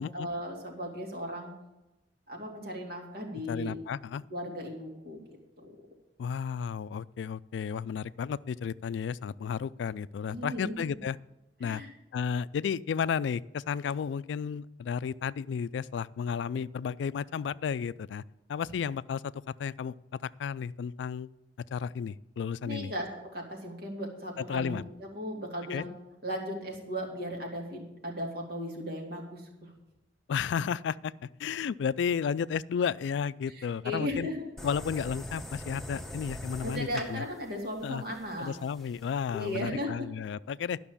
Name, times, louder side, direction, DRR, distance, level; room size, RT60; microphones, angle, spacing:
voice 1, 0.0-1.5 2.3-3.7 4.3-5.2 5.6-5.7 10.3-10.8 11.6-11.9 22.6-23.1 23.3-25.9 26.2-29.7 33.5-34.5 36.6-38.6 39.3-40.0, equal, 60° right, 0 dB, 2.6 m, -36 dB
voice 2, 3.5-4.2 6.2-11.2 11.6-11.8 12.1-18.2 18.5-19.9 20.2-21.3 21.7-22.9 24.4-24.8 25.7-25.8 30.3-34.3 34.6-37.2 37.8-38.0 38.4-40.8, left 7 dB, 90° left, 18 dB, 0.3 m, -33 dB
sound 1, 34.6-39.6, left 1 dB, ahead, 0.8 m, -43 dB
12.0 x 6.1 x 7.0 m, 0.98 s
head